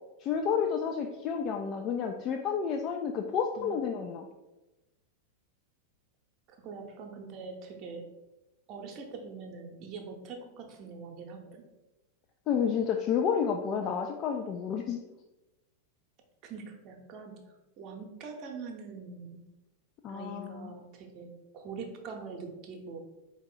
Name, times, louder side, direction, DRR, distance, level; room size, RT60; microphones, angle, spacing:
voice 1, 0.2-4.3 12.5-15.0 20.0-20.7, left 7 dB, 35° left, 3 dB, 0.3 m, -30 dB
voice 2, 6.6-8.1 8.7-11.6 16.5-17.4 17.8-19.4 20.1-21.3 21.5-23.0, right 4 dB, 40° right, 3 dB, 0.8 m, -43 dB
4.4 x 2.9 x 3.8 m, 1.0 s
figure-of-eight pair, 90°, 0 cm